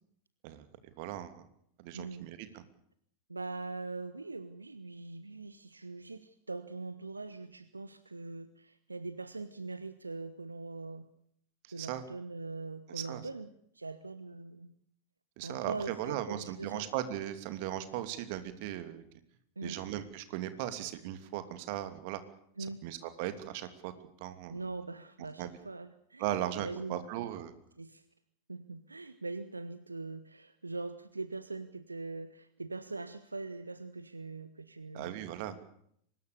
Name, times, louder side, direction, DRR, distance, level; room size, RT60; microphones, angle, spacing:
voice 1, 1.0-1.4 1.8-2.6 11.8-12.0 12.9-13.2 15.4-19.0 19.6-22.2 22.8-23.9 24.2-24.6 25.4-25.5 26.2-27.5 34.9-35.6, right 12 dB, 45° right, 10 dB, 2.8 m, -37 dB
voice 2, 1.9-2.2 2.5-2.6 3.3-11.1 11.7-13.5 13.7-14.7 15.4-16.9 19.6-19.8 22.6-22.8 24.5-27.1 27.8-28.0 28.5-35.2, right 3 dB, 80° right, 13 dB, 1.1 m, -42 dB
24.0 x 20.5 x 6.8 m, 0.68 s
figure-of-eight pair, 90°, 0 cm